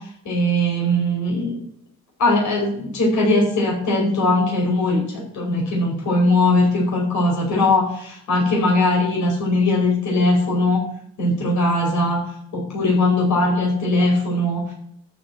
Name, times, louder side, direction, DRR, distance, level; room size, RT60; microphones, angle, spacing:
voice 1, 0.2-1.6 2.2-10.8 11.2-12.2 12.5-14.7, left 1 dB, 75° left, -2 dB, 5.0 m, -20 dB
13.5 x 5.2 x 7.8 m, 0.68 s
cardioid pair, 90°, 30 cm